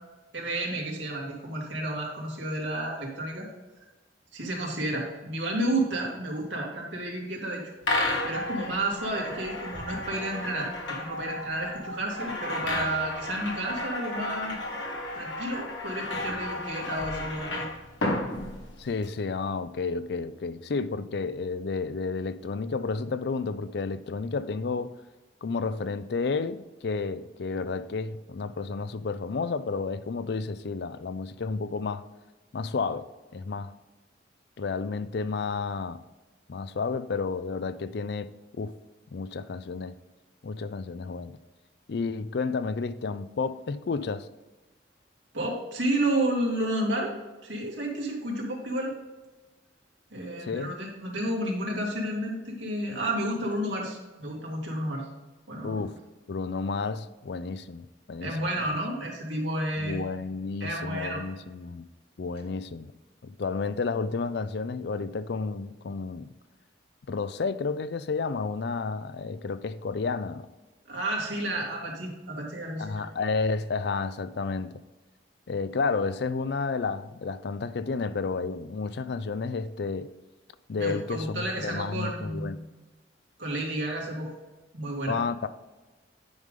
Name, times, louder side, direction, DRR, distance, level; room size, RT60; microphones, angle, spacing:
voice 1, 0.3-3.5 4.3-7.6 8.2-14.6 15.1-17.7 45.3-47.2 47.4-48.9 50.1-55.1 55.5-55.8 58.2-60.0 60.6-61.2 70.9-73.1 80.8-82.6 83.4-84.3 84.7-85.2, right 1 dB, 80° right, 2.3 m, -31 dB
sound 1, 7.8-19.1, left 2 dB, 85° left, 1.8 m, -33 dB
voice 2, 18.8-25.0 25.4-32.1 32.5-33.1 33.3-33.7 34.6-36.0 36.5-38.3 38.6-38.7 39.1-39.9 40.4-41.4 41.9-44.3 50.4-50.7 55.6-55.9 56.3-58.4 59.8-61.9 62.2-62.9 63.2-66.3 67.1-70.5 72.8-74.7 75.5-80.1 80.7-82.6 85.1-85.5, left 4 dB, 60° left, 0.4 m, -31 dB
9.6 x 5.3 x 3.6 m
head